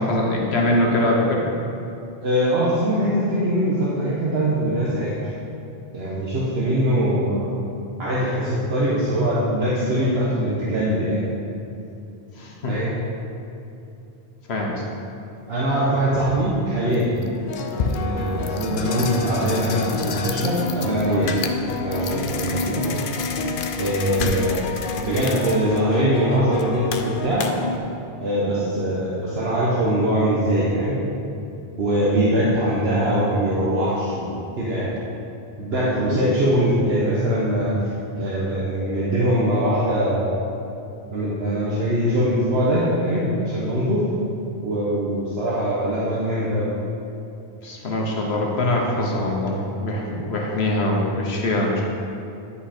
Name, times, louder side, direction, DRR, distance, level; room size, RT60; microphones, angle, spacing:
voice 1, 0.0-1.4 12.4-12.7 14.5-14.8 24.2-24.3 47.6-51.8, left 1 dB, 80° left, -2 dB, 1.4 m, -23 dB
voice 2, 2.2-5.3 5.9-7.4 8.0-11.2 12.7-12.9 15.5-17.2 17.8-21.3 21.8-22.8 23.8-27.5 28.2-30.9 31.8-34.9 35.6-37.7 38.1-40.4 41.1-44.0 44.6-46.7, equal, 75° right, -7 dB, 1.4 m, -22 dB
sound 1, 16.1-16.2 16.9-27.8, left 3 dB, 60° left, 0.7 m, -28 dB
9.9 x 5.5 x 4.3 m, 2.7 s
omnidirectional pair, 1.1 m